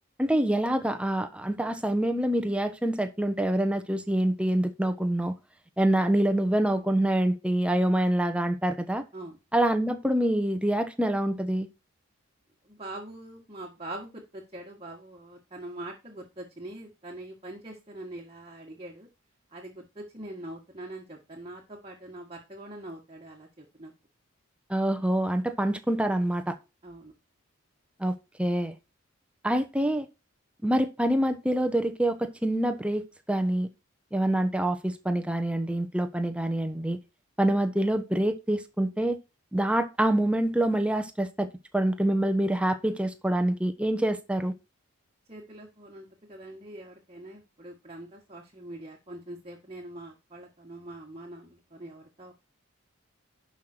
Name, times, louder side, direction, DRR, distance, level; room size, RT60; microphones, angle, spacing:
voice 1, 0.2-5.3 5.8-9.0 9.5-11.7 24.7-26.5 28.0-28.7 29.4-30.1 30.6-33.7 34.1-37.0 37.4-39.2 39.5-41.5 41.7-44.5, right 1 dB, 5° right, 1.0 m, -26 dB
voice 2, 12.6-19.1 19.5-23.9 26.8-27.1 45.3-52.3, right 1 dB, 25° right, 1.7 m, -43 dB
11.5 x 5.7 x 4.5 m
head